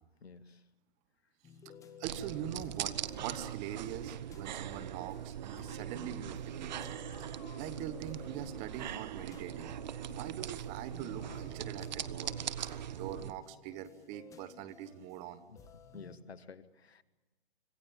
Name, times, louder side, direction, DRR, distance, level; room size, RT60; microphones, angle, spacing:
voice 1, 0.2-0.6 10.1-10.4 15.5-15.6 15.9-17.0, left 5 dB, 75° left, 15 dB, 1.5 m, -51 dB
sound 1, 1.4-16.2, left 6 dB, 10° left, 1.4 m, -56 dB
voice 2, 2.0-6.8 7.2-9.7 10.1-12.3 12.9-15.4, right 10 dB, 20° right, 14 dB, 1.1 m, -43 dB
sound 2, 2.0-13.3, right 10 dB, 45° right, 1.0 m, -41 dB
Cat, 5.5-6.2 6.9-8.6 9.1-10.3 10.9-12.5, left 7 dB, 40° left, 3.5 m, -58 dB
26.0 x 16.5 x 8.8 m, 1.2 s
hypercardioid pair, 140°, 31 cm